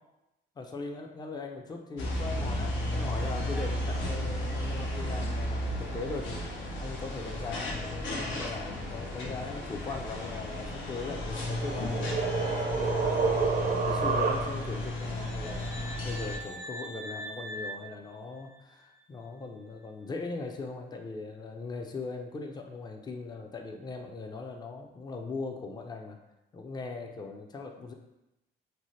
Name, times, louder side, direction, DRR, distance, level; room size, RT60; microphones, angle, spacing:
voice 1, 0.6-13.2 13.6-26.2 26.5-27.9, left 3 dB, 20° left, 3 dB, 0.4 m, -40 dB
sound 1, 2.0-16.4, left 1 dB, 80° left, 0.6 m, -34 dB
sound 2, 11.1-14.8, right 5 dB, 50° right, 0.5 m, -29 dB
sound 3, 14.7-18.8, equal, 60° left, 1.1 m, -43 dB
2.7 x 2.0 x 3.1 m, 0.92 s
cardioid pair, 90°, 20 cm